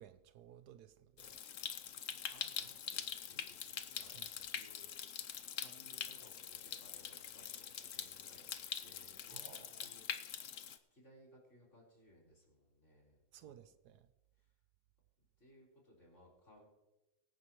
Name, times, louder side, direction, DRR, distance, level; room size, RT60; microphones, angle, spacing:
voice 1, 0.0-1.4 4.0-4.3 9.3-9.9 13.3-14.1, right 10 dB, 75° right, 1.1 m, -58 dB
Stream, 1.2-10.8, left 9 dB, 60° left, 0.9 m, -44 dB
voice 2, 2.2-10.6 10.9-13.6 14.4-14.5 15.4-16.7, equal, 45° left, 4.5 m, -64 dB
24.0 x 9.4 x 3.0 m
omnidirectional pair, 1.8 m